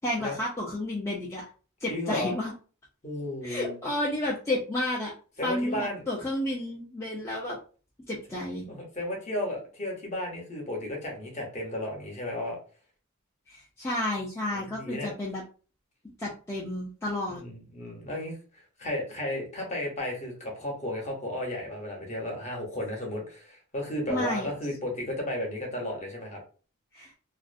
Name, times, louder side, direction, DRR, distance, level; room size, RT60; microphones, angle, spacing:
voice 1, 0.0-1.4 1.8-2.5 3.4-5.1 5.4-7.6 8.1-8.7 13.5-15.4 16.2-17.4 24.1-24.5 26.9-27.1, left 1 dB, 10° left, -5 dB, 0.4 m, -31 dB
voice 2, 1.9-2.3 3.0-3.8 5.4-6.0 8.7-12.6 14.5-15.1 17.3-18.4 18.8-26.4, left 1 dB, 30° left, 0 dB, 0.8 m, -33 dB
2.4 x 2.0 x 2.5 m, 0.37 s
head